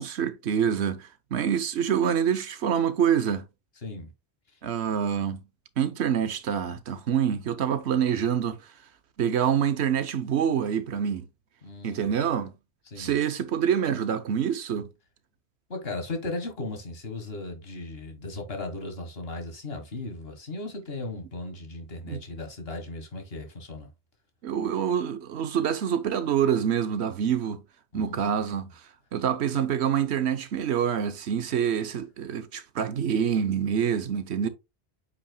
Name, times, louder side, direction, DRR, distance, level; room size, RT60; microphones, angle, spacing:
voice 1, 0.0-3.4 4.6-5.4 5.8-8.6 9.2-11.3 11.8-12.5 13.0-14.9 22.1-22.2 24.4-27.6 27.9-28.7 29.1-34.5, right 8 dB, 85° right, 1.1 m, -26 dB
voice 2, 3.8-4.1 11.6-12.1 12.9-13.1 15.7-23.9 27.9-28.5 34.4-34.5, left 2 dB, 65° left, 1.7 m, -37 dB
8.2 x 5.5 x 2.2 m
omnidirectional pair, 1.1 m